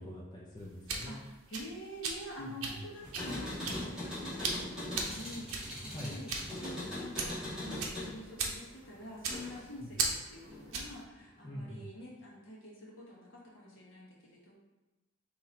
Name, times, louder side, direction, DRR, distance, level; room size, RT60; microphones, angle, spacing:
voice 1, 0.0-1.2 2.4-2.8 5.9-6.1 9.8-9.9 11.4-11.9, left 1 dB, 20° left, -5 dB, 0.5 m, -44 dB
sound 1, 0.6-11.0, right 4 dB, 85° right, 0.7 m, -39 dB
voice 2, 1.1-14.5, equal, 70° left, -5 dB, 1.4 m, -47 dB
sound 2, 3.0-9.8 10.1-11.0, left 1 dB, 5° right, 1.4 m, -41 dB
4.0 x 2.9 x 4.1 m, 1.1 s
head